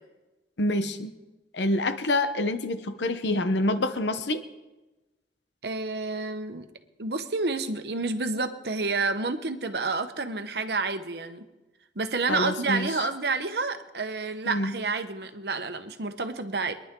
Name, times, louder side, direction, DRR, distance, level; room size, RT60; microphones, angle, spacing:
voice 1, 0.6-1.1 1.5-4.4 12.3-12.9 14.5-14.7, left 1 dB, 80° left, 9 dB, 0.9 m, -26 dB
voice 2, 5.6-6.7 7.0-11.4 11.9-16.7, right 3 dB, 65° right, 8 dB, 1.1 m, -29 dB
25.0 x 10.5 x 3.8 m, 1.1 s
head